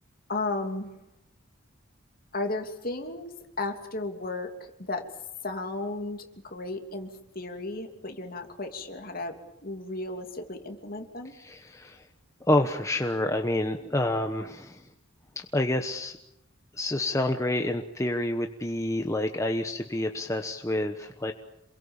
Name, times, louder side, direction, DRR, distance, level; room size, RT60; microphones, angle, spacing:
voice 1, 0.3-0.9 2.3-4.5 4.8-5.1 5.4-11.3, left 2 dB, 45° left, 5 dB, 2.9 m, -34 dB
voice 2, 11.3-12.0 12.5-14.8 15.4-16.2 16.7-21.3, left 1 dB, 15° left, 5 dB, 1.1 m, -28 dB
28.0 x 22.5 x 7.2 m, 0.85 s
head